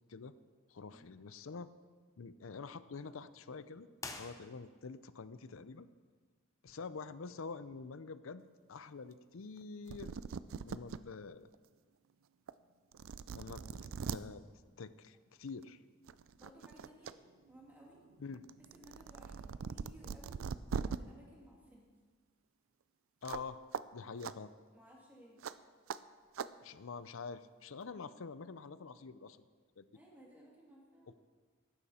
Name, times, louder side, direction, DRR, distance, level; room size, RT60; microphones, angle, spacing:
voice 1, 0.7-1.7 2.2-3.9 4.2-5.9 6.6-8.4 8.7-10.1 10.6-11.5 13.3-13.6 14.1-14.5 14.8-15.8 18.2-18.4 23.2-23.6 23.9-24.5 26.6-29.4 29.8-29.9, left 4 dB, 80° left, 14 dB, 0.6 m, -46 dB
sound 1, 4.0-5.0, left 3 dB, 15° left, 0.8 m, -47 dB
sound 2, 9.6-9.7 9.9-11.0 11.5-11.6 12.5-12.6 12.9-14.2 15.5-15.7 16.1-17.1 17.5-21.0 23.2-23.5 23.7-23.8 24.2-24.3 25.4-25.5 25.9-26.0 26.3-26.5, right 6 dB, 80° right, 0.4 m, -41 dB
voice 2, 16.4-17.2 17.5-18.0 18.6-20.4 20.8-21.9 24.7-25.4 29.9-31.1, right 1 dB, 10° right, -4 dB, 2.7 m, -59 dB
14.5 x 12.0 x 4.3 m, 1.5 s
head